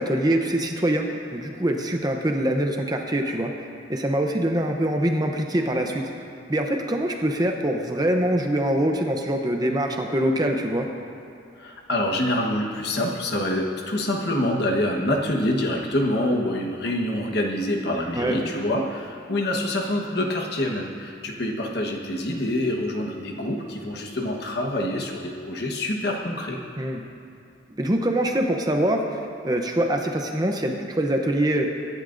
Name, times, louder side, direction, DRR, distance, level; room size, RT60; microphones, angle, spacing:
voice 1, 0.0-6.1 6.5-10.9 18.2-18.4 26.8-27.0 27.8-31.7, right 1 dB, 20° right, 3 dB, 0.7 m, -24 dB
voice 2, 11.6-26.6, left 1 dB, 55° left, 1 dB, 1.3 m, -26 dB
24.0 x 11.0 x 2.6 m, 2.4 s
head